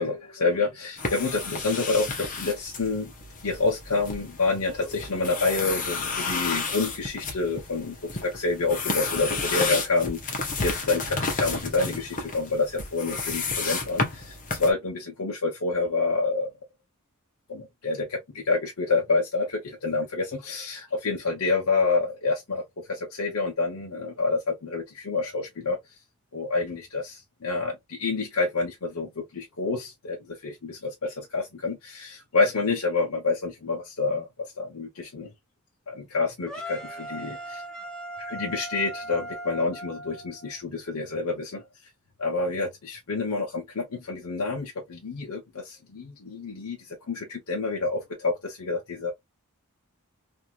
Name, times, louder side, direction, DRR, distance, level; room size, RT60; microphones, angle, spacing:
voice 1, 0.0-3.1 3.4-16.5 17.5-25.8 26.3-35.3 35.9-37.6 38.2-41.7 42.2-49.1, left 3 dB, 70° left, 0.8 m, -28 dB
Pencil - drawing lines, 1.0-14.7, left 4 dB, 35° left, 0.9 m, -32 dB
sound 1, 36.5-40.6, right 1 dB, 5° left, 0.9 m, -38 dB
3.0 x 2.6 x 2.3 m
head